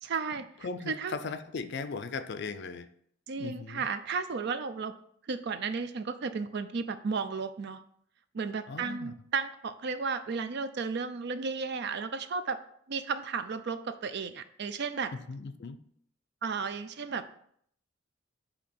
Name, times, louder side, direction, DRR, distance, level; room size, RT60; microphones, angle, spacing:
voice 1, 0.0-0.5 0.9-1.2 3.3-4.9 5.3-7.8 8.3-12.6 12.9-15.1 16.4-17.3, right 5 dB, 60° right, 11 dB, 0.5 m, -33 dB
voice 2, 0.6-2.9 3.4-3.9 8.7-9.1 15.3-15.8, left 4 dB, 60° left, 11 dB, 0.5 m, -38 dB
8.3 x 2.8 x 4.3 m, 0.66 s
head